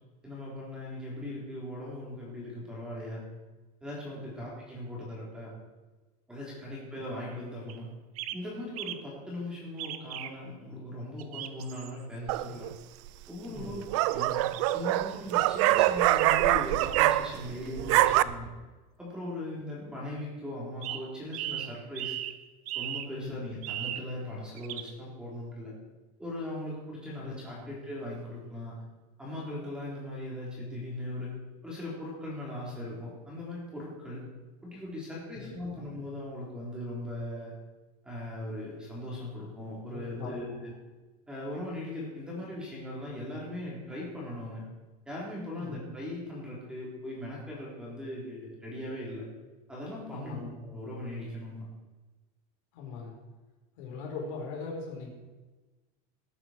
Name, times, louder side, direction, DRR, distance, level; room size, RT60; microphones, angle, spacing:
voice 1, 0.2-3.3 3.8-5.5 6.3-7.9 8.3-12.7 13.3-14.3 14.7-18.5 19.0-22.1 22.7-25.8 26.2-28.8 29.2-31.3 31.6-34.2 34.6-37.5 38.0-40.7 41.3-44.6 45.1-49.3 49.7-51.7, left 1 dB, 5° right, -5 dB, 3.9 m, -39 dB
sound 1, 7.7-7.8 8.2-8.4 8.8-9.0 9.8-10.3 11.2-11.9 12.4-12.5 13.0-13.1 14.0-14.7 15.6-16.5 16.8-17.2 17.8-18.6 20.8-21.0 21.3-22.4 22.7-23.1 23.6-24.1 24.6-24.9, right 13 dB, 65° right, 1.0 m, -37 dB
sound 2, 12.3-12.7 13.6-17.5 17.8-18.2, right 16 dB, 50° right, 0.5 m, -24 dB
voice 2, 13.5-14.0 23.1-23.4 27.1-27.7 35.3-35.9 39.8-40.6 45.5-45.8 50.1-50.5 52.7-53.2 53.8-55.1, left 4 dB, 55° left, -1 dB, 4.7 m, -41 dB
20.0 x 9.9 x 4.6 m, 1.2 s
supercardioid pair, 175°, 20 cm